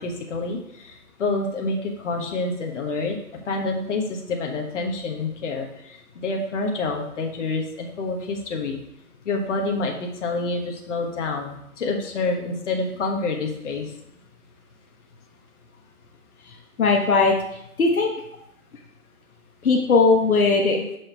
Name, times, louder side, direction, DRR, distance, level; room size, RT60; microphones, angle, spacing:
voice 1, 0.0-3.2 3.5-8.8 9.2-13.9 20.9-21.0, left 3 dB, 50° left, 1 dB, 1.4 m, -28 dB
voice 2, 16.4-18.1 19.6-20.8, left 4 dB, 65° left, 0 dB, 1.2 m, -19 dB
6.5 x 5.0 x 4.5 m, 0.75 s
hypercardioid pair, 150°, 45 cm